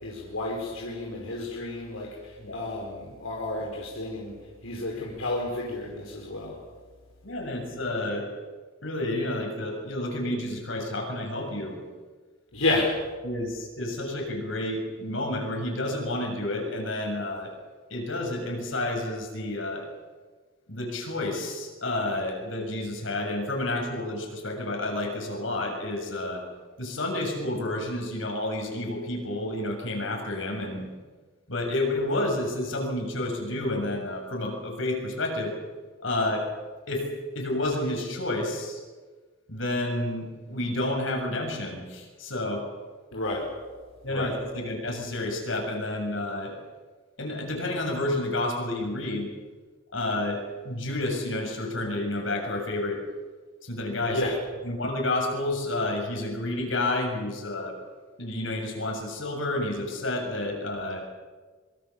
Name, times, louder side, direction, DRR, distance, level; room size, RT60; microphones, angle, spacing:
voice 1, 0.0-4.3 4.6-6.6 12.5-13.0 43.1-43.5 44.1-44.4 54.1-54.4, left 2 dB, 90° left, -2 dB, 4.8 m, -31 dB
voice 2, 7.2-8.3 8.8-11.8 13.2-17.5 17.9-19.9 20.7-26.4 26.8-30.9 31.5-35.5 36.0-36.5 36.9-37.1 37.4-38.8 39.5-42.6 44.0-46.5 47.2-49.3 49.9-53.0 53.6-54.3 54.6-57.8 58.2-61.0, left 1 dB, 70° left, 2 dB, 7.2 m, -30 dB
25.5 x 23.5 x 7.3 m, 1.4 s
head